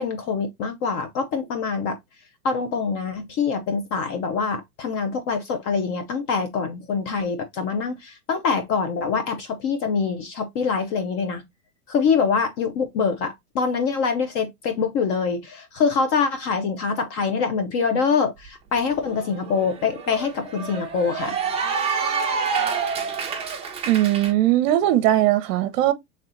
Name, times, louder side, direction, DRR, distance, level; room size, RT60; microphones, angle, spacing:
voice 1, 0.0-2.0 2.4-11.4 11.9-21.4, left 5 dB, 30° left, 0.5 m, -24 dB
Cheering / Applause, 18.5-18.6 18.9-24.3, right 5 dB, 15° right, 0.5 m, -28 dB
voice 2, 23.9-25.9, right 14 dB, 60° right, 0.7 m, -19 dB
3.2 x 2.8 x 3.7 m
hypercardioid pair, 130°, 46 cm